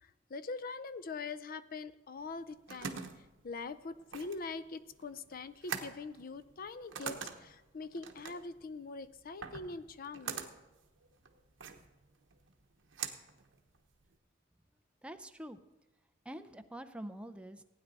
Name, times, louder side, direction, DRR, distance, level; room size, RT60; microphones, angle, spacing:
voice 1, 0.0-3.0 3.4-10.5, left 4 dB, 50° left, 14 dB, 0.5 m, -43 dB
sound 1, 2.2-14.2, right 6 dB, 70° right, 1.0 m, -45 dB
voice 2, 15.0-15.6 16.2-17.6, right 1 dB, 5° right, 8 dB, 0.5 m, -45 dB
16.0 x 9.4 x 4.0 m, 1.1 s
head